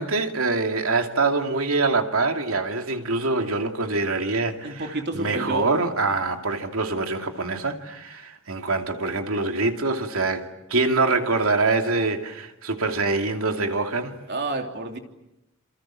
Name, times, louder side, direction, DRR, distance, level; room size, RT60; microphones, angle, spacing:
voice 1, 0.0-4.9 5.1-14.1, right 3 dB, 85° right, 2.6 m, -24 dB
voice 2, 4.6-5.8 14.3-15.0, right 2 dB, 50° right, 3.2 m, -29 dB
27.5 x 27.0 x 7.6 m
head